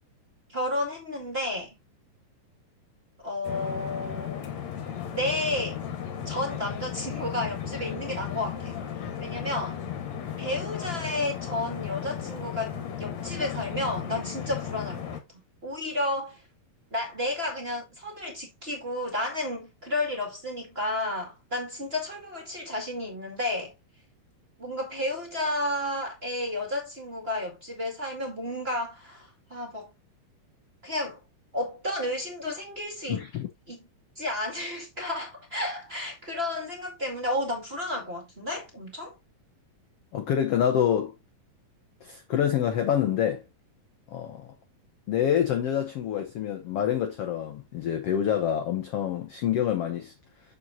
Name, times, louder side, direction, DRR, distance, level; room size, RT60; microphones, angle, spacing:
voice 1, 0.5-1.8 3.2-4.4 5.1-5.8 6.3-8.7 9.2-9.8 10.4-15.1 15.6-16.4 16.9-23.7 24.6-29.9 30.8-31.2 31.5-33.2 33.7-33.8 34.2-39.2, left 1 dB, 20° right, 1.8 m, -32 dB
sound 1, 3.4-15.2, left 9 dB, 60° left, 2.5 m, -35 dB
voice 2, 33.1-33.5 40.1-41.1 42.0-43.4 44.1-44.5 45.1-50.1, left 9 dB, 75° left, 1.4 m, -27 dB
7.6 x 6.9 x 2.8 m
omnidirectional pair, 4.0 m